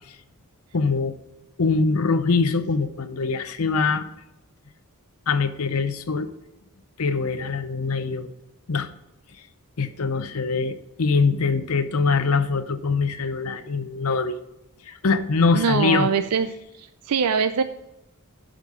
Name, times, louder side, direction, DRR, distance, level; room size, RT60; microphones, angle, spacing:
voice 1, 0.7-1.2 1.6-4.0 5.3-6.3 7.0-8.3 8.7-8.9 9.8-14.4 14.8-16.1, left 4 dB, 70° left, 9 dB, 0.7 m, -23 dB
voice 2, 15.5-16.5 16.8-17.6, right 6 dB, 85° right, 10 dB, 0.5 m, -22 dB
11.0 x 5.2 x 5.4 m, 0.90 s
head